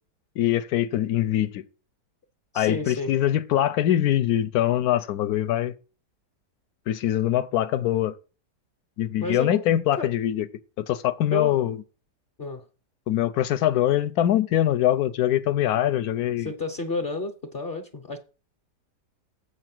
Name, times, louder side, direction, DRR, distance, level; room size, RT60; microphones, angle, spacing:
voice 1, 0.4-1.6 2.5-5.7 6.9-8.1 9.0-10.5 10.8-11.8 13.1-16.5, left 12 dB, 70° left, 1.1 m, -23 dB
voice 2, 2.5-3.1 9.2-9.6 10.0-10.1 11.3-11.6 12.4-12.6 16.4-18.2, left 3 dB, 40° left, 0.9 m, -31 dB
7.6 x 6.3 x 6.0 m
omnidirectional pair, 1.8 m